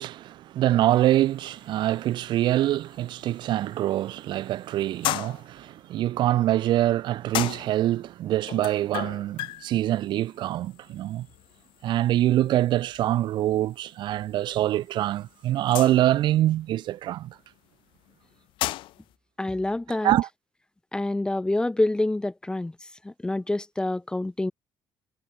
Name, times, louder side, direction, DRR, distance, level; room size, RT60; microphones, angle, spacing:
voice 1, 0.0-11.3 11.8-17.4 20.0-20.3, right 13 dB, 70° right, 0.7 m, -24 dB
sound 1, 0.9-19.1, left 17 dB, 85° left, 1.1 m, -38 dB
voice 2, 19.4-20.1 20.9-22.7 23.0-24.5, left 2 dB, 10° left, 0.9 m, -27 dB
cardioid pair, 120°, 8 cm